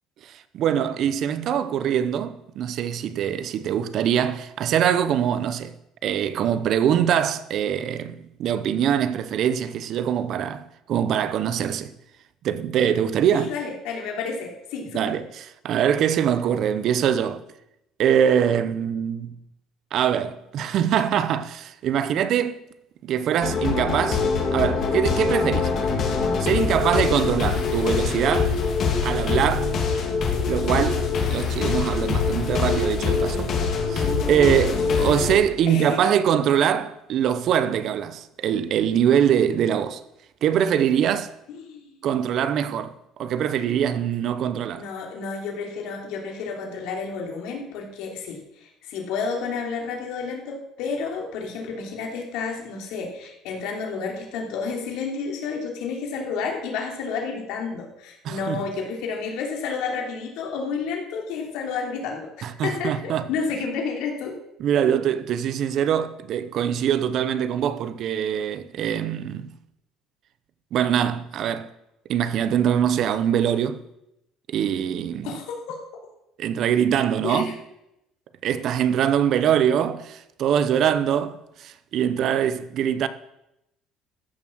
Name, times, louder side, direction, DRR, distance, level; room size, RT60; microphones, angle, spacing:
voice 1, 0.2-5.7 6.0-11.9 12.4-13.5 14.9-17.4 18.0-19.3 19.9-22.6 23.0-24.2 24.5-26.1 26.4-28.6 29.0-29.8 30.5-33.5 33.9-40.0 40.4-41.3 42.0-42.9 43.2-44.9 58.2-58.6 62.4-63.3 64.6-69.5 70.7-71.7 72.1-73.8 74.5-75.3 76.4-77.5 78.4-83.1, right 9 dB, 50° right, 0.8 m, -23 dB
voice 2, 13.3-15.1 35.1-35.2 35.7-36.0 41.6-41.9 44.7-64.4 75.2-75.7 77.2-77.5, left 5 dB, 75° left, 3.1 m, -31 dB
sound 1, 23.4-35.4, left 5 dB, 45° left, 3.0 m, -24 dB
14.0 x 7.2 x 6.3 m
cardioid pair, 145°, 0 cm